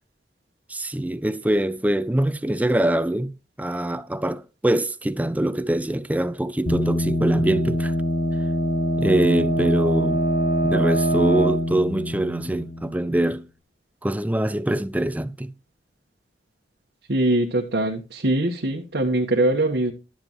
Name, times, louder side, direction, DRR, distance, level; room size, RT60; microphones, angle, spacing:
voice 1, 0.7-8.0 9.0-10.2 10.6-13.5 14.0-15.5, right 1 dB, 10° right, 0.4 m, -24 dB
sound 1, 6.7-13.3, equal, 50° left, 1.2 m, -24 dB
voice 2, 17.1-19.9, right 1 dB, 80° right, 1.3 m, -22 dB
11.5 x 7.7 x 3.1 m
head